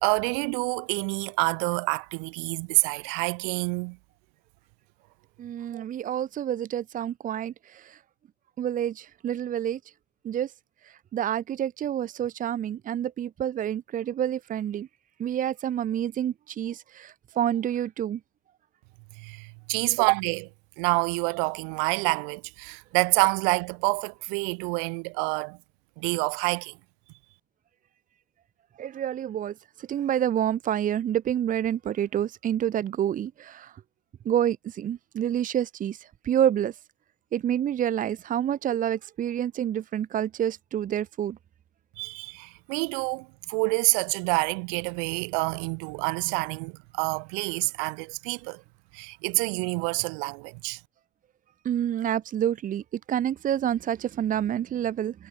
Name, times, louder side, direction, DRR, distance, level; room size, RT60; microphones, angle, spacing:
voice 1, 0.0-4.0 5.7-5.8 19.2-20.5 20.8-25.6 26.0-26.7 42.0-48.6 48.9-50.8, right 40 dB or more, 60° right, 3.7 m, -27 dB
voice 2, 5.4-8.0 8.6-9.8 10.2-10.5 10.8-14.9 15.2-18.2 28.8-33.8 34.3-36.8 37.3-41.4 51.6-55.3, right 10 dB, 25° right, 2.0 m, -28 dB
supercardioid pair, 155°, 31 cm